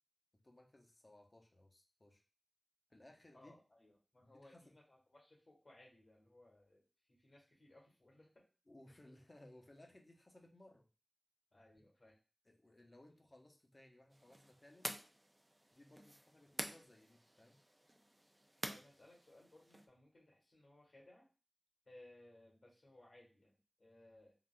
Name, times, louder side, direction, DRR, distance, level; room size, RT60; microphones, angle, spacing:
voice 1, 0.3-2.2 2.9-3.6 4.2-4.7 8.7-10.9 12.5-14.9 15.7-17.6, left 1 dB, 45° left, 1 dB, 0.8 m, -62 dB
voice 2, 3.3-8.4 11.5-12.2 18.6-21.3 21.8-24.4, left 1 dB, 75° left, -4 dB, 1.5 m, -63 dB
sound 1, 14.1-19.9, right 1 dB, 20° right, 0.4 m, -49 dB
3.8 x 2.3 x 2.2 m, 0.34 s
cardioid pair, 40°, 0 cm